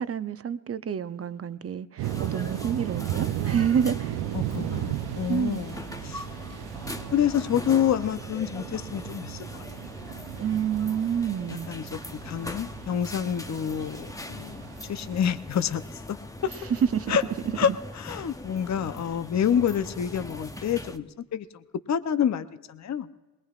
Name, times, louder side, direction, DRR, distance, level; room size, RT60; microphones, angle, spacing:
voice 1, 0.0-4.2 5.3-5.6 10.4-11.7 16.9-17.2 17.6-17.8, right 8 dB, 35° right, 0.6 m, -28 dB
sound 1, 2.0-21.0, left 1 dB, 10° left, 0.8 m, -41 dB
sound 2, 2.0-15.3, right 13 dB, 75° right, 0.6 m, -35 dB
voice 2, 4.3-5.7 6.0-6.2 7.1-9.6 11.5-15.8 16.1-16.2 16.4-16.5 17.1-17.2 17.6-17.7 18.0-21.6 21.9-23.1, left 8 dB, 45° left, 0.7 m, -28 dB
22.0 x 19.0 x 2.4 m
cardioid pair, 70°, 40 cm